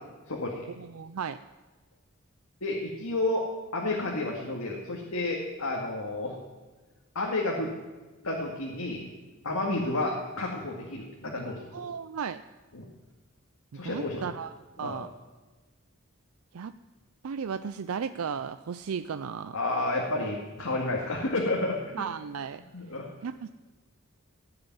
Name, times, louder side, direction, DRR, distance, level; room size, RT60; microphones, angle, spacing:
voice 1, 0.3-0.7 2.6-3.5 3.7-6.4 7.2-7.7 8.2-9.1 9.4-11.7 12.7-12.9 13.7-14.2 14.8-15.0 19.5-22.0 22.7-23.1, left 2 dB, 90° left, -2 dB, 2.1 m, -31 dB
voice 2, 0.8-1.4 11.7-12.4 13.7-15.1 16.5-16.7 17.2-19.6 21.9-22.6 23.2-23.5, right 6 dB, 80° right, 11 dB, 0.4 m, -35 dB
16.5 x 6.9 x 9.6 m, 1.3 s
head